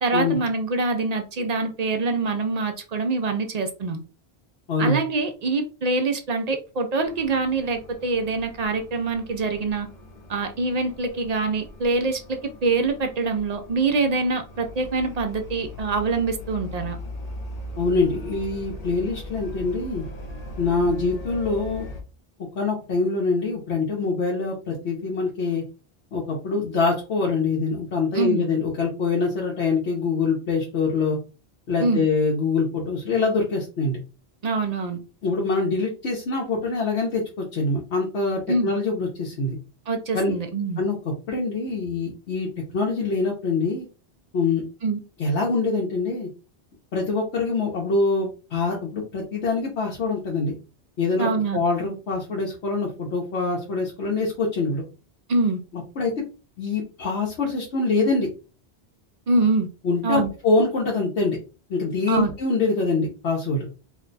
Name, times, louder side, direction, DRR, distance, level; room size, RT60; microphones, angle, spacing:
voice 1, 0.0-4.0 4.8-9.9 10.3-17.0 28.1-28.5 31.8-32.0 34.4-35.0 38.5-38.7 39.9-40.8 44.8-45.0 51.2-51.6 55.3-55.6 59.3-59.7 60.0-60.3 62.1-62.3, right 3 dB, 55° right, 0.4 m, -24 dB
sound 1, 7.0-22.0, left 1 dB, 45° left, 0.6 m, -39 dB
voice 2, 17.8-20.1 20.6-21.9 22.5-25.6 26.1-31.2 31.7-34.0 35.2-39.6 40.1-40.3 40.8-41.0 41.3-42.5 42.7-43.9 44.3-44.6 45.2-46.3 46.9-50.5 51.0-54.8 56.0-56.1 56.6-58.3 59.8-61.4 61.7-63.6, left 3 dB, 90° left, 1.1 m, -24 dB
2.6 x 2.2 x 3.8 m
omnidirectional pair, 1.1 m